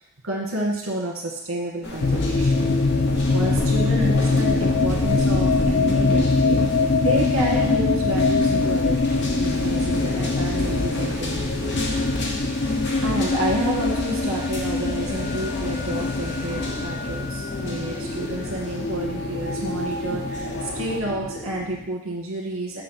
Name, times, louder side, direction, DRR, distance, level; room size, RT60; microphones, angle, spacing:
voice 1, 0.2-2.6 3.3-9.0 9.4-11.8 13.0-22.8, right 1 dB, 80° right, -1 dB, 1.7 m, -30 dB
sound 1, 1.8-21.0, left 1 dB, 55° left, 1.1 m, -33 dB
sound 2, 2.0-21.8, left 3 dB, 35° left, 0.4 m, -23 dB
7.4 x 2.6 x 5.8 m, 0.77 s
head